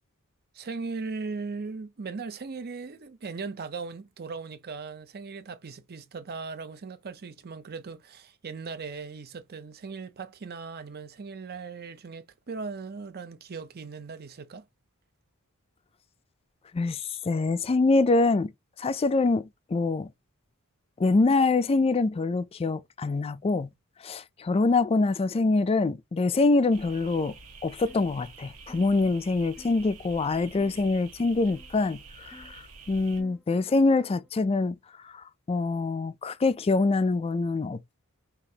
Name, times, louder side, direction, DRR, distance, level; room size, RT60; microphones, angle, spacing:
voice 1, 0.5-14.7, right 4 dB, 45° right, 0.6 m, -38 dB
voice 2, 16.7-18.5 18.8-20.1 21.0-23.7 24.0-27.4 27.6-32.6 32.9-34.8 35.1-38.0, left 3 dB, 25° left, 0.3 m, -25 dB
sound 1, 26.7-33.2, right 4 dB, 75° right, 1.1 m, -48 dB
sound 2, 27.9-28.1 28.7-29.0 29.6-29.8 30.6-30.9 31.5-31.7 32.3-32.5 33.2-33.4 34.0-34.3, left 1 dB, 5° left, 1.0 m, -52 dB
5.0 x 2.8 x 2.8 m
head